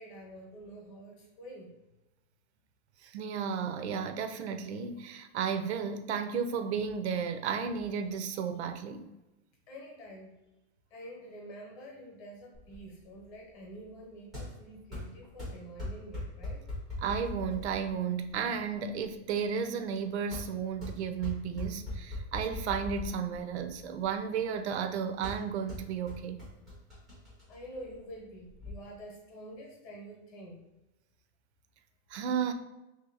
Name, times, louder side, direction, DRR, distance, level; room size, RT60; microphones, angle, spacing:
voice 1, 0.0-1.7 9.7-10.3 10.9-16.6 27.5-30.6, right 1 dB, 30° left, -1 dB, 0.8 m, -47 dB
voice 2, 3.0-9.1 17.0-26.4 32.1-32.5, right 7 dB, 90° right, 8 dB, 0.6 m, -33 dB
sound 1, 12.5-28.7, left 1 dB, ahead, 0.3 m, -43 dB
3.0 x 2.7 x 3.8 m, 1.0 s
supercardioid pair, 175°, 33 cm